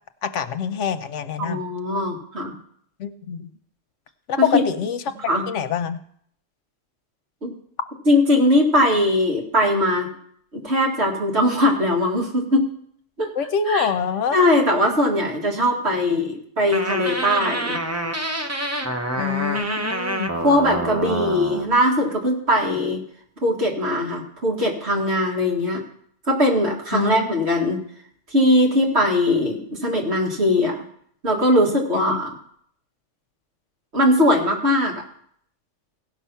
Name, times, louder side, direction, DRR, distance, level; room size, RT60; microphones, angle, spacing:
voice 1, 0.2-1.6 3.0-3.5 4.3-5.0 5.5-6.0 13.4-14.4 19.2-20.3 26.9-27.1 32.1-32.2, left 7 dB, 80° left, 10 dB, 1.0 m, -25 dB
voice 2, 1.4-2.5 4.4-4.6 5.3-5.5 7.4-7.5 8.1-10.1 10.6-12.7 13.2-13.3 13.7-13.9 14.3-17.8 20.4-23.0 23.4-25.8 26.2-27.8 28.3-30.7 31.2-32.3 33.9-35.0, left 1 dB, 60° right, -1 dB, 2.4 m, -20 dB
sound 1, 16.7-21.7, right 1 dB, 15° right, 0.7 m, -27 dB
16.5 x 6.0 x 5.6 m, 0.65 s
omnidirectional pair, 1.3 m